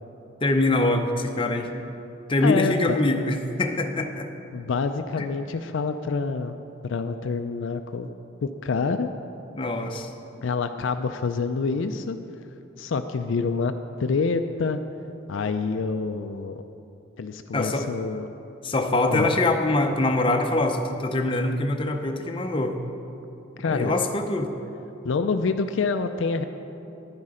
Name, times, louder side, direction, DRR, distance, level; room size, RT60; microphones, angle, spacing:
voice 1, 0.4-1.7 2.3-4.3 5.2-5.3 9.5-10.1 17.5-17.9 18.6-22.8 23.6-24.5, left 2 dB, 25° left, 4 dB, 0.6 m, -24 dB
voice 2, 2.4-3.0 4.5-6.5 6.8-8.1 8.4-9.1 10.4-12.2 12.8-14.8 15.3-16.6 17.2-18.3 19.1-19.3 23.6-23.9 25.0-26.4, left 4 dB, 65° left, 8 dB, 0.4 m, -27 dB
10.5 x 9.7 x 5.0 m, 2.9 s
head